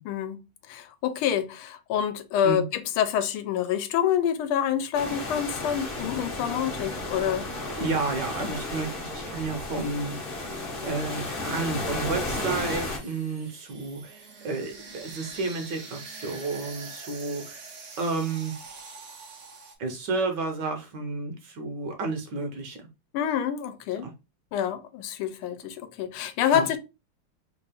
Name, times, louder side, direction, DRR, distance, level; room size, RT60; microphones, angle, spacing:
voice 1, 0.1-7.5 23.1-24.1 24.5-26.8, left 9 dB, 85° left, 1.5 m, -27 dB
sound 1, 4.9-13.0, left 2 dB, 50° left, 0.6 m, -33 dB
voice 2, 7.8-10.4 10.8-17.7 18.0-18.5 19.8-22.8 24.0-24.1 26.5-26.7, right 3 dB, 65° right, 1.2 m, -31 dB
sound 2, 12.8-19.8, right 4 dB, 80° right, 0.6 m, -44 dB
3.5 x 2.4 x 3.5 m
omnidirectional pair, 2.3 m